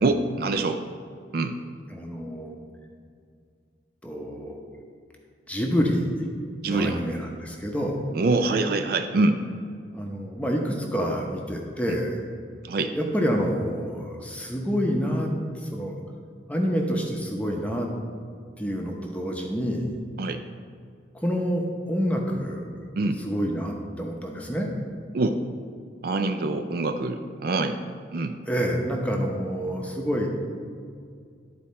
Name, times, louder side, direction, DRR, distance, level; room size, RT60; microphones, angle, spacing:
voice 1, 0.0-0.8 1.3-1.5 6.6-7.0 8.1-9.4 11.9-12.0 12.6-12.9 20.2-20.4 23.0-23.2 25.1-25.4 26.0-27.8 28.1-28.4, right 3 dB, 50° right, 7 dB, 0.4 m, -25 dB
voice 2, 1.9-2.6 4.0-4.6 5.5-6.1 6.6-8.0 9.9-12.2 12.9-15.3 15.6-15.9 16.5-17.9 18.6-19.9 21.1-22.7 23.2-24.7 28.5-30.3, equal, 5° left, 1 dB, 0.7 m, -27 dB
11.5 x 4.2 x 4.2 m, 2.2 s
head